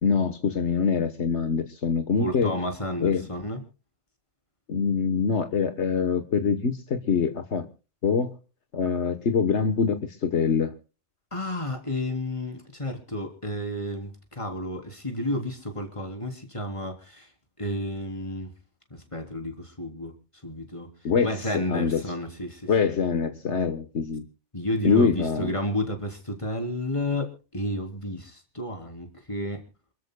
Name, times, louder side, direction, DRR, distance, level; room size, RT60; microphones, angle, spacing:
voice 1, 0.0-2.5 3.0-3.3 4.7-7.7 8.0-8.3 8.7-10.7 21.0-22.0 22.7-24.2 24.8-25.5, left 5 dB, 70° left, 8 dB, 1.6 m, -24 dB
voice 2, 2.2-3.6 11.3-17.3 17.6-18.5 18.9-20.1 20.4-20.9 21.2-22.7 24.5-29.6, left 1 dB, 25° left, 3 dB, 3.7 m, -31 dB
28.0 x 13.5 x 2.3 m, 0.35 s
omnidirectional pair, 1.2 m